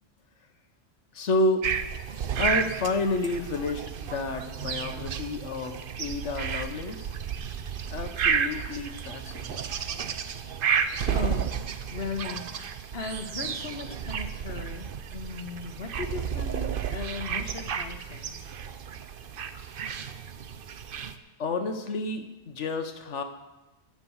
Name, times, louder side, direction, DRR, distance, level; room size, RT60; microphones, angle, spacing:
voice 1, 1.1-1.7 2.4-7.1 7.9-9.8 21.4-23.2, left 2 dB, 85° left, 7 dB, 1.5 m, -30 dB
sound 1, 1.6-21.2, right 7 dB, 55° right, 0.8 m, -32 dB
voice 2, 11.1-11.5 11.9-18.4, left 4 dB, 60° left, 6 dB, 1.5 m, -37 dB
17.5 x 6.1 x 7.1 m, 1.0 s
omnidirectional pair, 1.2 m